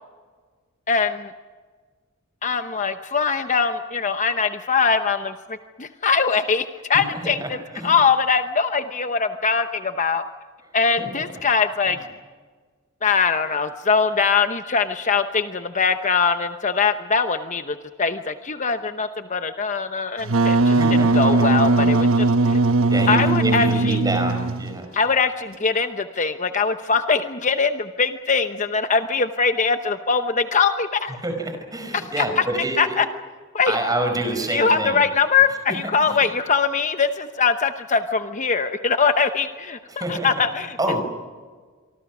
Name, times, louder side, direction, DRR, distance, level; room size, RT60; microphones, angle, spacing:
voice 1, 0.9-1.3 2.4-5.3 5.8-7.6 7.8-10.2 10.7-12.0 13.0-20.8 21.1-22.6 23.1-24.0 24.9-31.1 31.9-32.4 32.8-33.1 33.5-33.8 34.5-40.8, left 5 dB, 35° left, 8 dB, 0.9 m, -22 dB
voice 2, 6.9-8.0 11.0-11.4 11.9-12.0 20.6-21.3 21.8-22.0 22.9-24.9 31.2-33.0 33.7-35.0 36.0-36.3 39.9-40.4 40.8-41.0, right 2 dB, 20° right, 5 dB, 4.9 m, -27 dB
Wind instrument woodwind instrument, 20.2-24.8, right 3 dB, 70° right, 1.1 m, -19 dB
27.0 x 24.5 x 6.1 m, 1.5 s
head